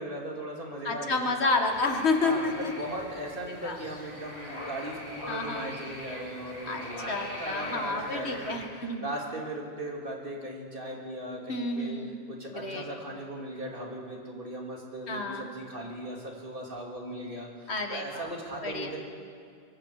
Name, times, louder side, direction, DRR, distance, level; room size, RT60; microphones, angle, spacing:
voice 1, 0.0-1.3 2.2-8.5 8.8-12.0 12.3-19.0, right 1 dB, 55° right, -1 dB, 3.1 m, -38 dB
voice 2, 0.8-2.7 3.5-3.8 5.3-5.7 6.7-9.0 11.5-12.2 12.6-12.8 15.1-15.5 17.7-18.2 18.6-18.9, left 3 dB, 85° left, 3 dB, 2.1 m, -30 dB
sound 1, 1.7-8.7, left 1 dB, 30° left, 4.5 m, -42 dB
23.5 x 23.5 x 4.9 m, 2.3 s
omnidirectional pair, 1.1 m